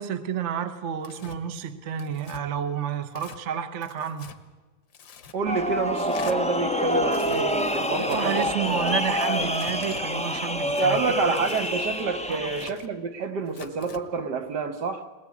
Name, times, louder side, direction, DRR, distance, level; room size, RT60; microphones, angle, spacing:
voice 1, 0.0-4.3 8.0-11.0 12.3-12.5, right 8 dB, 45° right, 1.1 m, -30 dB
Tearing, 1.0-1.4 2.0-2.4 3.1-3.4 3.8-4.4 4.9-5.4 6.0-6.4 7.0-7.4 8.1-8.6 9.2-10.0 10.7-11.7 12.3-12.9 13.5-14.0, left 6 dB, 70° left, 1.9 m, -45 dB
voice 2, 5.3-9.1 10.6-15.1, right 5 dB, 60° right, 1.5 m, -28 dB
sound 1, 5.5-12.7, left 1 dB, 5° left, 0.5 m, -27 dB
21.0 x 18.5 x 8.4 m
omnidirectional pair, 2.2 m